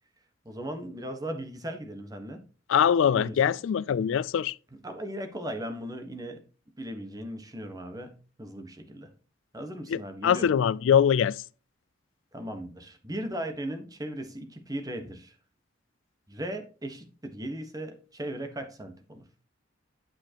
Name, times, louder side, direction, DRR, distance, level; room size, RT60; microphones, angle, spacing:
voice 1, 0.4-2.4 3.1-3.5 4.7-6.4 6.8-9.1 9.5-10.5 12.3-15.3 16.3-19.3, right 1 dB, 20° right, 1.3 m, -37 dB
voice 2, 2.7-4.5 9.9-11.4, left 8 dB, 75° left, 0.3 m, -23 dB
8.9 x 7.5 x 2.9 m
head